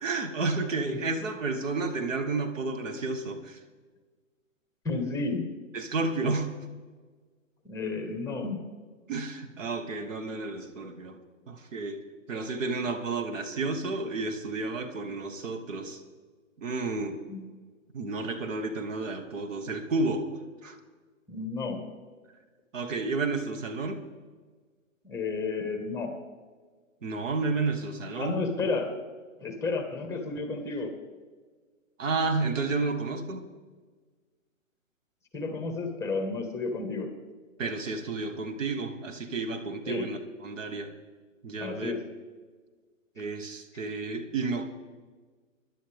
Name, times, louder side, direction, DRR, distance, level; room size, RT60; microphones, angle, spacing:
voice 1, 0.0-3.6 5.7-6.5 9.1-11.2 11.5-12.0 12.3-16.0 16.6-17.2 17.9-20.3 20.6-20.8 22.7-24.0 27.0-28.4 32.0-33.5 37.6-40.9 41.4-42.0 43.2-44.7, right 3 dB, 70° right, 5 dB, 1.9 m, -31 dB
voice 2, 4.8-5.6 7.7-8.6 17.3-17.5 21.3-21.8 25.0-26.2 28.2-28.9 29.4-30.9 35.3-37.1 39.9-40.1 41.6-42.1, left 3 dB, 5° left, 5 dB, 1.7 m, -32 dB
20.5 x 11.5 x 3.6 m, 1.5 s
hypercardioid pair, 130°, 40 cm